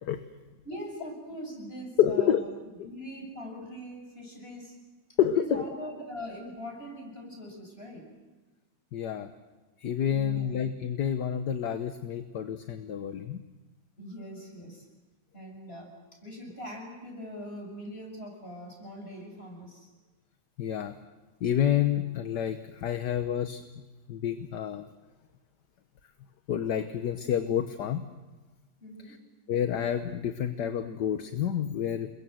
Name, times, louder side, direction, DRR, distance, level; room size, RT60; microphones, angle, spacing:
voice 1, 0.6-2.4 2.8-4.7 5.3-8.1 10.1-10.6 14.0-14.8 15.3-15.9 16.2-19.9 28.8-29.2, equal, 30° left, 2 dB, 7.4 m, -42 dB
voice 2, 2.0-2.4 5.2-5.6 8.9-9.3 9.8-13.4 20.6-20.9 21.4-23.6 24.1-24.9 26.5-28.0 29.0-29.2 29.5-32.1, left 9 dB, 65° left, 9 dB, 1.6 m, -28 dB
29.0 x 22.5 x 7.9 m, 1.2 s
omnidirectional pair, 2.0 m